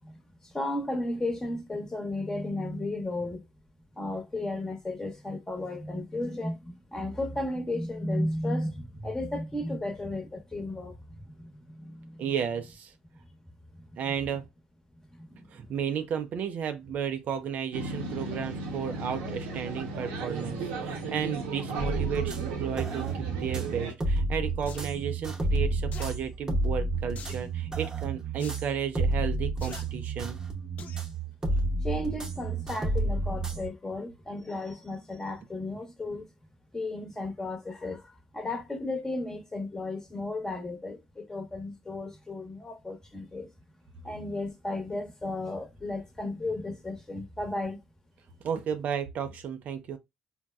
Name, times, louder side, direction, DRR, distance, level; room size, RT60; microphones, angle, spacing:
voice 1, 0.4-3.4 4.0-11.0 11.4-11.5 11.8-12.1 15.2-15.5 31.8-36.3 36.7-38.0 38.3-43.5 44.0-47.8, left 2 dB, 15° left, 1.0 m, -34 dB
voice 2, 12.2-12.9 14.0-14.4 15.5-30.4 48.4-50.0, right 8 dB, 55° right, 0.5 m, -33 dB
sound 1, 17.7-23.9, right 3 dB, 80° right, 0.9 m, -35 dB
sound 2, 21.8-33.7, right 2 dB, 20° right, 0.8 m, -30 dB
sound 3, 24.7-24.9 25.9-26.1 27.2-27.5 28.4-28.6 29.6-29.8 30.8-31.1 31.5-31.6, left 5 dB, 50° left, 0.5 m, -45 dB
4.0 x 2.2 x 2.3 m
supercardioid pair, 70°, 3 cm